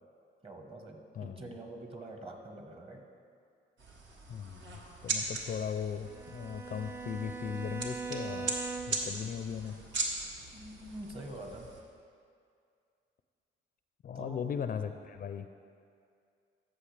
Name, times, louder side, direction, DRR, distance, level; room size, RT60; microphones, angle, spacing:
voice 1, 0.4-3.1 10.5-11.7 14.1-14.5, right 1 dB, 25° right, 3 dB, 1.2 m, -45 dB
voice 2, 1.2-1.5 4.3-8.6 8.9-9.8 14.0-15.5, left 7 dB, 45° left, 9 dB, 0.4 m, -38 dB
sound 1, 3.8-11.8, right 3 dB, 70° right, 1.3 m, -39 dB
Bowed string instrument, 6.0-9.2, right 4 dB, 10° right, 0.4 m, -41 dB
14.0 x 6.1 x 3.3 m, 2.3 s
cardioid pair, 90°, 20 cm